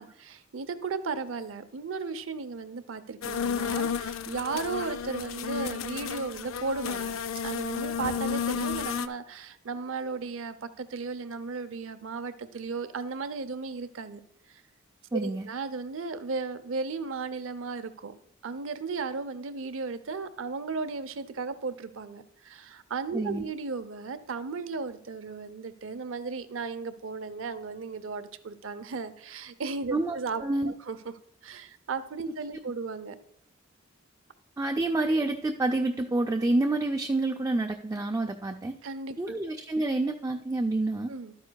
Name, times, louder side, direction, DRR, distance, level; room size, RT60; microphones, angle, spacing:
voice 1, 0.0-14.2 14.5-14.6 15.1-18.1 18.4-31.0 31.4-33.2 38.8-39.4 41.1-41.3, right 4 dB, 80° right, 12 dB, 0.6 m, -35 dB
sound 1, 3.2-9.1, left 6 dB, 85° left, 0.4 m, -32 dB
voice 2, 15.1-15.5 23.1-23.4 29.9-30.7 34.6-38.8 39.2-41.1, right 2 dB, 15° right, 3 dB, 0.4 m, -28 dB
12.0 x 9.5 x 2.3 m, 0.76 s
head